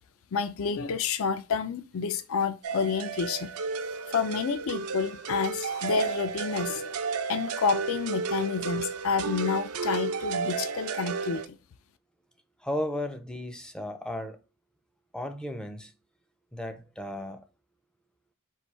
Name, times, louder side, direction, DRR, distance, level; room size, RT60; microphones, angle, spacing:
voice 1, 0.3-3.5 4.1-6.9 7.3-11.5, left 5 dB, 70° left, 0.4 m, -29 dB
sound 1, 2.6-11.5, right 5 dB, 85° right, 0.6 m, -33 dB
voice 2, 12.6-14.4 15.1-15.9 16.5-17.4, left 1 dB, 5° left, 0.4 m, -34 dB
4.6 x 2.7 x 4.1 m
head